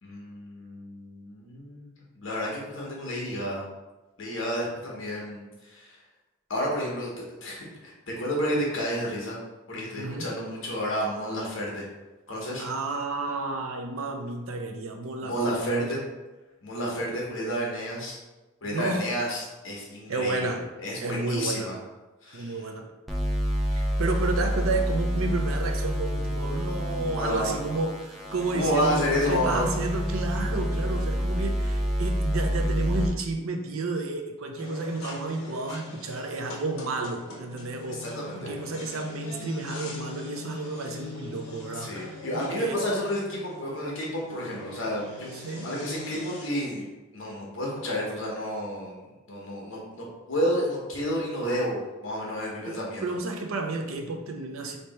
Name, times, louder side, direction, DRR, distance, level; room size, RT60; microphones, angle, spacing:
voice 1, 0.0-3.6 4.2-6.0 6.5-9.4 9.7-11.9 12.3-12.6 15.2-16.0 16.6-18.2 18.6-21.8 22.2-22.6 26.9-27.5 28.5-29.7 37.9-38.5 41.7-45.3 45.6-46.8 47.1-53.1, equal, 65° left, -3 dB, 1.2 m, -31 dB
voice 2, 9.9-10.3 12.6-16.1 18.6-19.1 20.1-20.7 21.0-21.7 22.3-22.9 23.7-42.8 45.3-45.7 52.7-54.8, right 3 dB, 75° right, 3 dB, 0.6 m, -31 dB
sound 1, 23.1-33.1, equal, ahead, 0.5 m, -28 dB
sound 2, 34.6-46.5, left 2 dB, 85° left, 0.8 m, -41 dB
3.3 x 2.9 x 4.2 m, 1.1 s
head